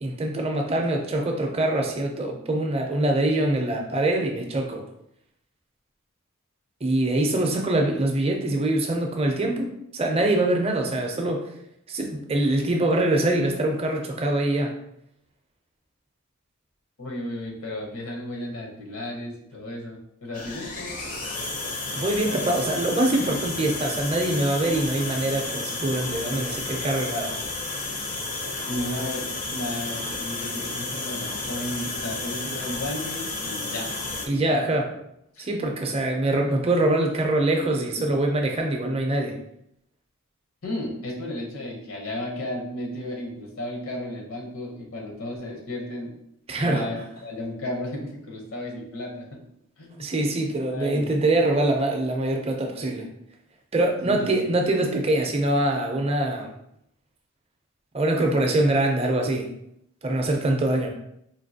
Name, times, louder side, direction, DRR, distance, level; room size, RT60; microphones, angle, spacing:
voice 1, 0.0-4.8 6.8-11.5 11.9-14.7 21.9-27.3 34.3-34.9 35.4-39.3 46.5-46.9 50.0-53.1 53.7-56.5 57.9-59.4 60.0-60.9, right 1 dB, 25° right, 2 dB, 0.5 m, -24 dB
voice 2, 17.0-21.1 22.2-22.5 28.7-34.7 35.3-35.5 40.6-46.2 46.6-49.4 49.8-50.1 50.7-51.1 54.0-54.2, left 1 dB, 75° left, 0 dB, 0.9 m, -34 dB
sound 1, 20.3-34.3, left 3 dB, 35° left, 0.5 m, -32 dB
4.5 x 2.8 x 2.7 m, 0.76 s
head